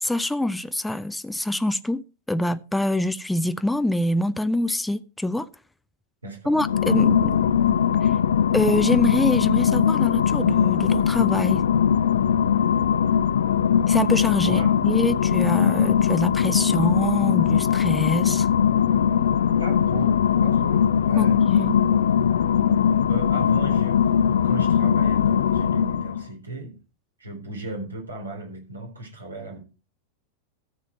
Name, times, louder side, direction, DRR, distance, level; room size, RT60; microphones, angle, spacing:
voice 1, 0.0-5.5 6.5-7.4 8.0-8.2 8.5-11.6 13.9-18.5 21.2-21.8, left 1 dB, 5° left, 0.5 m, -25 dB
voice 2, 6.2-6.6 14.4-14.7 19.6-21.6 23.1-26.8 27.2-29.6, right 2 dB, 80° right, 3.8 m, -36 dB
sound 1, 6.5-26.3, left 8 dB, 65° left, 0.5 m, -20 dB
14.0 x 7.4 x 4.5 m
figure-of-eight pair, 90°, 0 cm